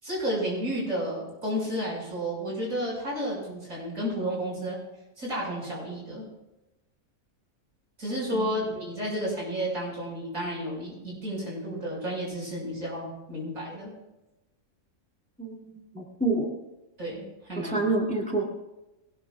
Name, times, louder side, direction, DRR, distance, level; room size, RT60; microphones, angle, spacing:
voice 1, 0.0-4.8 5.2-6.3 8.0-13.9 17.0-17.7, equal, 75° right, -3 dB, 6.9 m, -32 dB
voice 2, 15.4-16.5 17.6-18.4, right 2 dB, 5° left, -1 dB, 2.7 m, -28 dB
22.0 x 19.0 x 2.4 m, 0.98 s
omnidirectional pair, 1.5 m